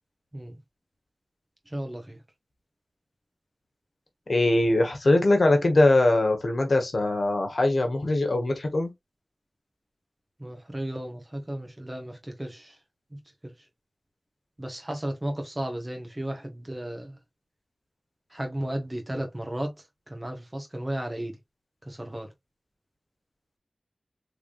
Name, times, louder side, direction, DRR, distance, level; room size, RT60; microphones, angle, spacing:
voice 1, 1.7-2.2 10.4-12.8 13.4-13.5 14.6-17.2 18.3-19.8 20.1-21.4 21.8-22.3, right 1 dB, 25° right, 1.2 m, -34 dB
voice 2, 4.3-8.9, left 2 dB, 70° left, 1.3 m, -22 dB
3.5 x 3.3 x 2.5 m
cardioid pair, 45°, 0 cm